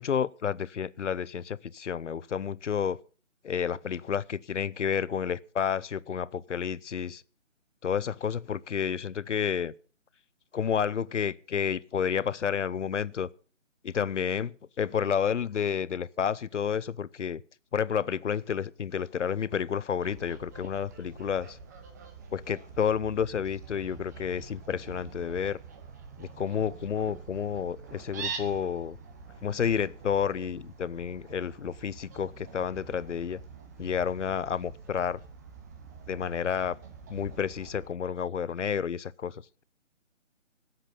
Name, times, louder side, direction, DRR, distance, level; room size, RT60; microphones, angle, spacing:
voice 1, 0.0-3.0 3.4-7.2 7.8-9.7 10.5-13.3 13.8-17.4 17.7-21.6 22.3-25.6 26.2-29.0 29.4-33.4 33.8-35.2 36.1-36.8 37.1-39.6, left 7 dB, 65° left, 0.7 m, -30 dB
Fowl, 20.0-37.9, right 5 dB, 15° right, 0.9 m, -45 dB
18.0 x 8.0 x 5.5 m
figure-of-eight pair, 155°, 38 cm